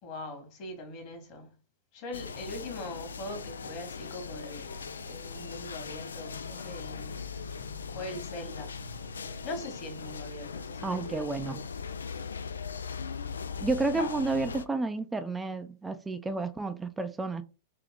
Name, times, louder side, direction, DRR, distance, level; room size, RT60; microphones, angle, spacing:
voice 1, 0.0-1.5 1.9-4.8 5.0-7.3 7.9-8.7 9.4-11.7 13.9-14.1, left 1 dB, 45° left, 2.0 m, -42 dB
sound 1, 2.1-14.7, left 5 dB, 80° left, 0.3 m, -39 dB
sound 2, 2.1-11.1, right 3 dB, 55° right, 1.1 m, -56 dB
voice 2, 10.8-11.6 13.6-17.4, right 3 dB, 10° right, 0.5 m, -31 dB
3.5 x 2.9 x 3.6 m
hypercardioid pair, 100°, 0 cm